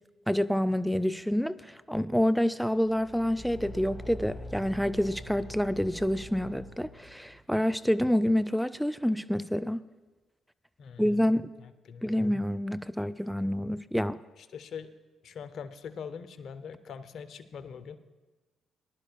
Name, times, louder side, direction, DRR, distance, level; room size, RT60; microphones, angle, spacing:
voice 1, 0.3-9.8 11.0-11.5 12.0-14.2, equal, ahead, 0.4 m, -28 dB
Car / Engine, 2.8-7.4, left 1 dB, 25° left, 2.2 m, -44 dB
voice 2, 10.8-11.3 11.6-12.2 14.4-14.9 15.2-18.0, left 6 dB, 65° left, 0.6 m, -43 dB
19.5 x 11.5 x 2.3 m
hypercardioid pair, 50°, 0 cm